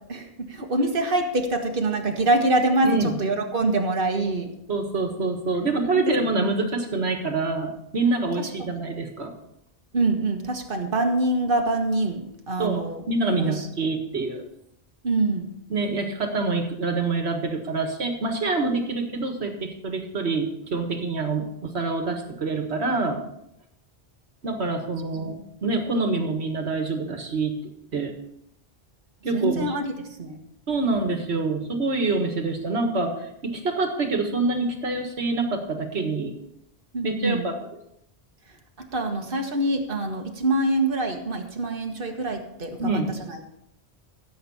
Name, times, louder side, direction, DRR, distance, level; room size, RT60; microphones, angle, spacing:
voice 1, 0.1-4.5 5.9-6.4 8.4-8.7 9.9-13.0 13.4-13.7 15.0-15.5 25.1-25.3 29.3-30.4 36.9-37.5 38.8-42.8 43.3-43.4, right 2 dB, 55° right, 3 dB, 1.6 m, -25 dB
voice 2, 4.7-9.3 12.6-14.4 15.7-23.2 24.4-27.5 27.9-28.1 29.2-29.7 30.7-36.3 37.0-37.5 42.8-43.1, right 3 dB, 80° right, 4 dB, 1.9 m, -26 dB
15.5 x 7.7 x 4.2 m, 0.76 s
omnidirectional pair, 1.1 m